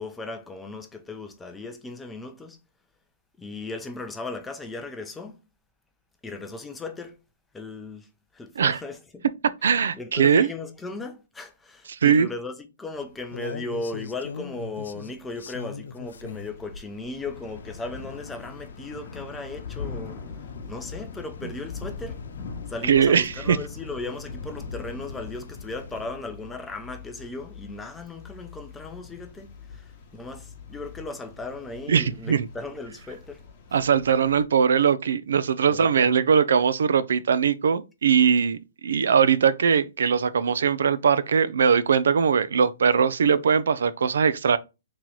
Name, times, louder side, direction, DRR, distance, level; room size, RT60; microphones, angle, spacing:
voice 1, 0.0-2.6 3.4-5.4 6.2-7.2 7.5-9.2 9.9-20.2 20.7-22.2 22.7-33.4 33.7-33.8 35.7-36.3, left 3 dB, 10° left, 0.5 m, -37 dB
voice 2, 9.6-10.5 11.9-12.3 22.8-23.6 31.9-32.5 33.7-44.6, right 7 dB, 75° right, 0.3 m, -21 dB
sound 1, 12.9-26.1, left 5 dB, 80° left, 0.4 m, -43 dB
Thunder / Rain, 16.0-34.4, left 5 dB, 35° left, 1.0 m, -42 dB
3.0 x 3.0 x 3.8 m
hypercardioid pair, 155°, 0 cm